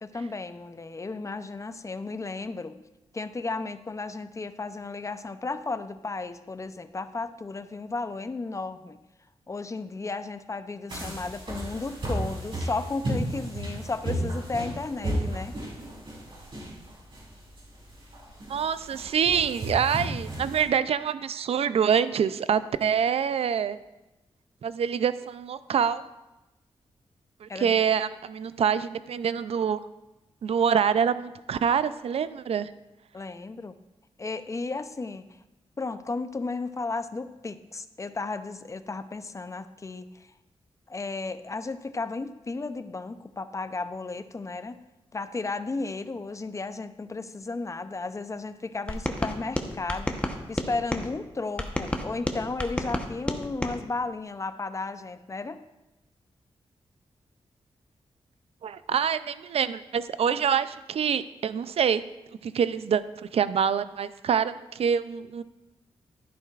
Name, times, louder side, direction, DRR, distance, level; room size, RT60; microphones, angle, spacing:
voice 1, 0.0-2.8 3.1-9.0 9.5-15.5 27.5-27.8 33.1-33.7 34.2-35.2 35.8-40.3 40.9-44.8 45.1-55.6, left 3 dB, 30° left, 11 dB, 0.5 m, -34 dB
sound 1, 10.9-20.6, right 1 dB, 50° right, 3.8 m, -33 dB
voice 2, 18.5-23.8 24.6-26.0 27.4-29.8 30.4-32.7 58.6-62.0 62.4-63.0 63.3-65.4, right 7 dB, 70° right, 14 dB, 0.4 m, -26 dB
sound 2, 48.9-51.1 51.6-53.8, left 1 dB, 10° left, 1.0 m, -31 dB
12.0 x 10.5 x 2.4 m, 1.0 s
cardioid pair, 80°, 11 cm